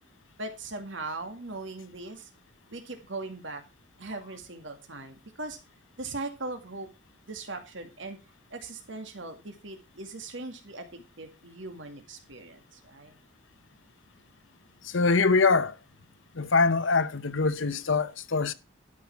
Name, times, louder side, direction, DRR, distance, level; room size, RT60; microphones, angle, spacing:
voice 1, 0.4-2.3 2.7-3.6 4.0-5.6 6.0-6.9 7.3-8.2 8.5-10.9 11.2-13.1, right 2 dB, 75° right, 2.1 m, -39 dB
voice 2, 14.8-15.8 16.3-18.5, left 4 dB, 80° left, 0.9 m, -24 dB
12.0 x 5.5 x 5.8 m
head